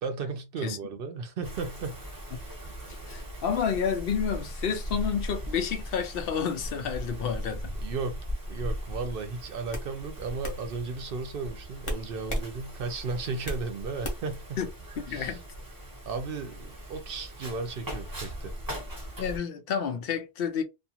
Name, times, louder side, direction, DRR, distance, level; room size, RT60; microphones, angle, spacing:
voice 1, 0.0-2.0 7.8-8.2 8.5-14.6 15.1-15.4 16.1-18.5, right 4 dB, 65° right, 0.8 m, -35 dB
Wind, 1.4-19.4, equal, 20° right, 0.8 m, -39 dB
voice 2, 2.9-7.7 14.6-14.7 15.0-15.4 19.2-20.6, left 7 dB, 70° left, 0.8 m, -30 dB
sound 1, 8.9-9.1 9.7-9.9 10.4-10.6 11.8-12.5 12.9-13.7 14.0-14.4, equal, 35° left, 0.7 m, -33 dB
2.4 x 2.4 x 2.8 m
omnidirectional pair, 1.1 m